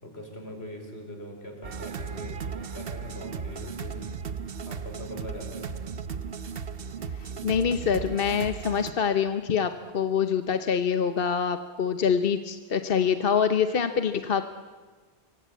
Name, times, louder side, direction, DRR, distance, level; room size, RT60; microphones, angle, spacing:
voice 1, 0.0-4.1 4.7-5.7, left 1 dB, 90° left, 3 dB, 5.4 m, -41 dB
sound 1, 1.6-8.9, right 6 dB, 65° right, 1.2 m, -36 dB
voice 2, 7.2-14.4, left 7 dB, 65° left, 9 dB, 1.1 m, -25 dB
25.0 x 24.5 x 8.3 m, 1.4 s
omnidirectional pair, 1.0 m